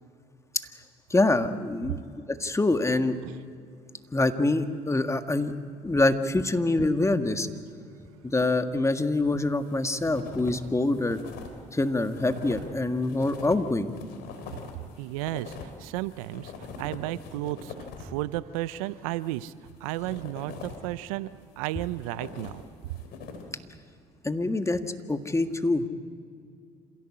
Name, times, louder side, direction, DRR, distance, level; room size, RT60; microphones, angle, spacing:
voice 1, 1.1-2.0 2.3-3.2 4.1-5.5 5.8-7.5 8.2-11.2 11.7-13.9 24.2-25.9, left 2 dB, 15° left, 8 dB, 1.7 m, -25 dB
sound 1, 9.3-10.6 10.9-18.2 19.0-20.9 21.4-23.6, left 5 dB, 70° left, 3.6 m, -43 dB
voice 2, 15.0-19.5 19.8-22.6, right 17 dB, 85° right, 17 dB, 0.6 m, -33 dB
27.0 x 16.5 x 8.6 m, 2.4 s
hypercardioid pair, 60°, 18 cm